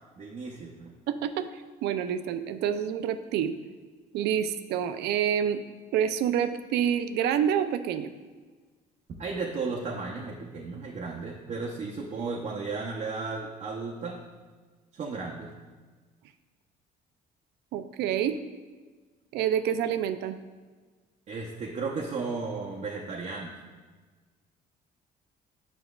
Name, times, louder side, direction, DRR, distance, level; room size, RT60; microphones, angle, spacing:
voice 1, 0.2-0.9 9.2-14.2 14.9-15.5 21.3-23.5, right 4 dB, 45° right, -2 dB, 0.7 m, -34 dB
voice 2, 1.1-1.5 1.8-3.5 4.1-5.6 5.9-8.1 17.7-18.4 19.3-20.4, right 9 dB, 80° right, 10 dB, 0.4 m, -27 dB
7.8 x 6.0 x 2.3 m, 1.4 s
cardioid pair, 110°, 17 cm